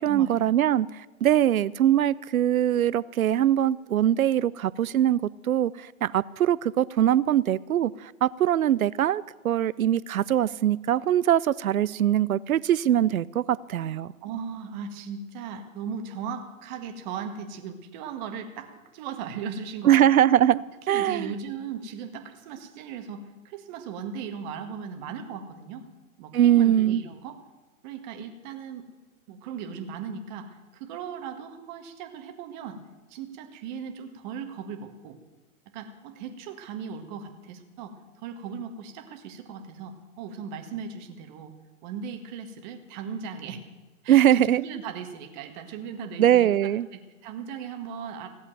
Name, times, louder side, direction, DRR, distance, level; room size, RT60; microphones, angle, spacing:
voice 1, 0.0-14.1 19.8-20.6 20.9-21.3 26.3-27.0 44.1-44.6 46.2-46.9, right 11 dB, 75° right, 20 dB, 0.6 m, -22 dB
voice 2, 14.2-20.0 20.9-25.8 26.2-27.4 27.8-28.9 29.3-32.8 33.1-35.2 35.7-41.5 41.8-43.6 44.0-48.3, right 6 dB, 35° right, 6 dB, 1.7 m, -37 dB
16.0 x 8.2 x 9.0 m, 1.2 s
hypercardioid pair, 135°, 42 cm